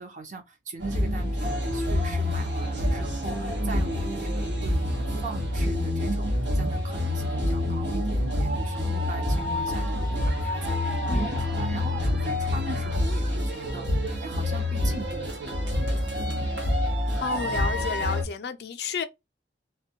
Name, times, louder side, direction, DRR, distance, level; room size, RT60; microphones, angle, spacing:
voice 1, 0.0-16.5, right 3 dB, 40° right, 0.6 m, -40 dB
sound 1, 0.8-18.2, left 1 dB, 85° right, 0.8 m, -27 dB
voice 2, 17.2-19.0, left 6 dB, 60° left, 0.3 m, -31 dB
2.2 x 2.1 x 2.7 m
head